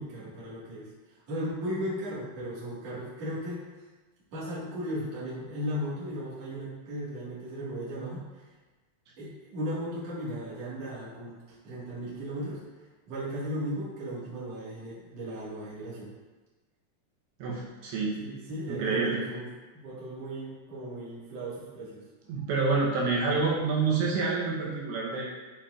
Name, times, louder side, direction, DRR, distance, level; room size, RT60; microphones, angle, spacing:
voice 1, 0.0-3.6 4.3-8.5 9.2-12.6 13.1-16.1 18.2-19.4 19.7-22.0, equal, 50° right, -9 dB, 2.1 m, -36 dB
voice 2, 17.4-18.2 18.7-19.2 22.3-25.3, right 4 dB, 80° right, -4 dB, 3.1 m, -28 dB
7.1 x 5.7 x 2.5 m, 1.2 s
omnidirectional pair, 5.2 m